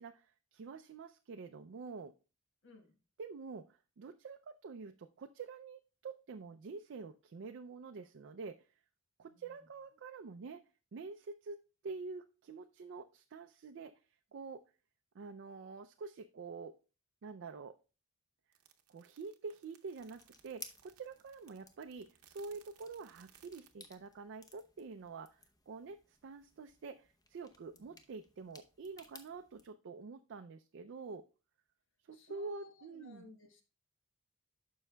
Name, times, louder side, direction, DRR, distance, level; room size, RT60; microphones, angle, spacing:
voice 1, 0.0-2.1 3.2-8.7 9.2-10.6 10.9-11.6 11.8-13.9 14.3-14.6 15.1-16.7 17.2-17.8 18.9-31.3 32.1-33.3, right 4 dB, 55° right, 6 dB, 0.4 m, -47 dB
voice 2, 2.6-3.0 9.2-9.6 27.7-27.9 32.1-33.6, left 2 dB, 60° left, 5 dB, 1.3 m, -58 dB
sound 1, 18.5-23.7, right 10 dB, 85° right, 0.8 m, -65 dB
sound 2, 20.0-29.7, left 3 dB, 15° left, 0.7 m, -59 dB
12.0 x 5.5 x 2.2 m, 0.33 s
head